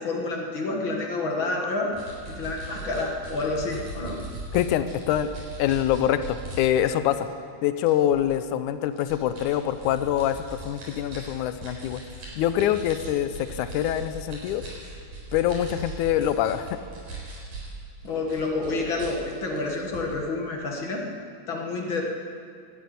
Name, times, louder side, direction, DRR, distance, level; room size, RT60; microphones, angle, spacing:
voice 1, 0.0-1.9 2.3-4.2 18.0-21.0 21.5-22.0, left 3 dB, 45° left, 0 dB, 2.0 m, -29 dB
sound 1, 1.9-6.6 7.1-7.3 7.8-8.3 9.0-17.7 18.1-20.1, right 2 dB, 80° right, 5.5 m, -39 dB
voice 2, 4.5-5.3 5.6-7.3 7.6-12.0 12.4-14.6 15.3-16.8, left 11 dB, 85° left, 11 dB, 2.1 m, -25 dB
12.5 x 11.0 x 9.4 m, 2.3 s
omnidirectional pair, 3.4 m